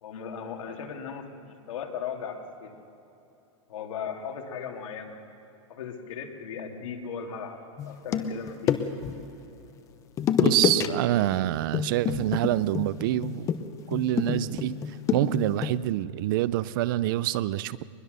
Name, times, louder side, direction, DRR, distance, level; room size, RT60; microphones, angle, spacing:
voice 1, 0.0-2.7 3.7-5.3 5.7-7.6 7.9-8.9, left 6 dB, 85° left, 2 dB, 2.7 m, -37 dB
sound 1, 7.8-9.2 10.2-10.9 11.2-11.4 11.7-15.8, left 8 dB, 20° left, 0.8 m, -28 dB
voice 2, 10.4-13.6 13.9-17.8, right 15 dB, 40° right, 18 dB, 0.4 m, -26 dB
22.5 x 21.0 x 6.7 m, 2.8 s
supercardioid pair, 165°, 16 cm